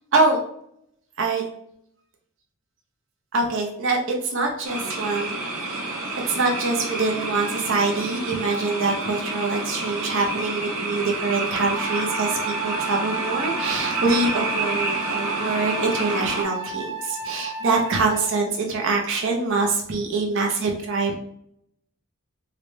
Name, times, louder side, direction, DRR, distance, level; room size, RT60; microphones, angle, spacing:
voice 1, 3.3-6.0 6.3-21.1, right 3 dB, 60° right, 1 dB, 0.6 m, -24 dB
sound 1, 4.6-16.4, right 2 dB, 90° right, 0.9 m, -29 dB
Wind instrument woodwind instrument, 11.7-18.5, right 4 dB, 15° right, 0.6 m, -32 dB
3.8 x 2.1 x 3.1 m, 0.70 s
head